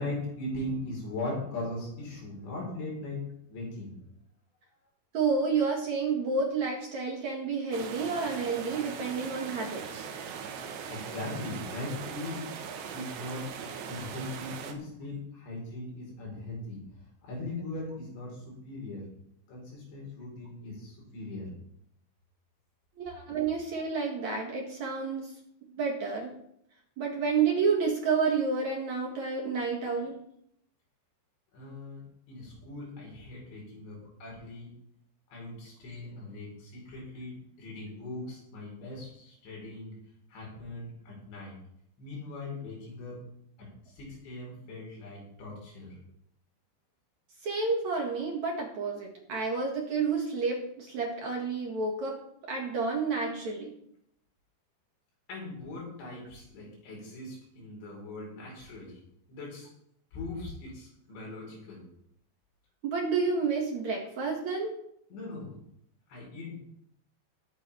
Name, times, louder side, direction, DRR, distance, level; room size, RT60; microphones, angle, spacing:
voice 1, 0.0-3.2 3.5-4.0 10.9-12.4 12.9-16.8 17.2-19.0 19.5-21.5 31.5-32.0 32.3-34.7 35.3-40.0 40.3-41.6 42.0-43.2 43.6-46.0 55.3-59.0 59.3-59.7 60.1-61.8 65.1-65.6 66.1-66.6, left 2 dB, 80° left, -2 dB, 6.6 m, -39 dB
voice 2, 5.1-10.1 23.0-25.3 25.8-26.3 27.0-30.2 47.4-52.2 52.5-53.7 62.8-64.7, right 4 dB, 50° right, -1 dB, 2.5 m, -30 dB
sound 1, 7.7-14.7, right 7 dB, 75° right, 3.3 m, -40 dB
19.5 x 8.9 x 3.4 m, 0.72 s
omnidirectional pair, 5.1 m